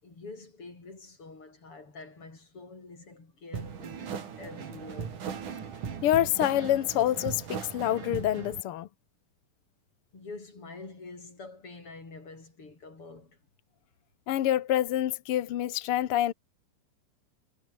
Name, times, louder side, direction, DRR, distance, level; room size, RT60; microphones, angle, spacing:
voice 1, 0.0-5.3 10.1-13.4, left 3 dB, 40° left, 6.9 m, -46 dB
sound 1, 3.5-8.6, right 7 dB, 70° right, 4.5 m, -38 dB
voice 2, 6.0-8.9 14.3-16.3, left 12 dB, 65° left, 1.4 m, -27 dB
omnidirectional pair, 3.7 m